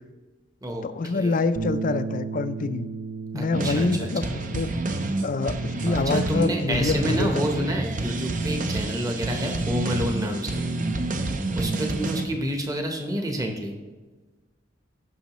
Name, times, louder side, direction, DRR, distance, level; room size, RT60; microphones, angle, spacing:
voice 1, 0.8-2.9 3.3-4.7 5.2-7.7, left 3 dB, 45° left, 12 dB, 0.4 m, -26 dB
Bass guitar, 1.6-7.8, right 4 dB, 80° right, 0.6 m, -36 dB
voice 2, 3.3-4.1 5.9-10.6 11.5-13.7, equal, 20° right, 3 dB, 1.0 m, -29 dB
sound 1, 3.5-12.3, right 2 dB, 45° right, 0.7 m, -28 dB
15.5 x 6.1 x 3.1 m, 1.3 s
head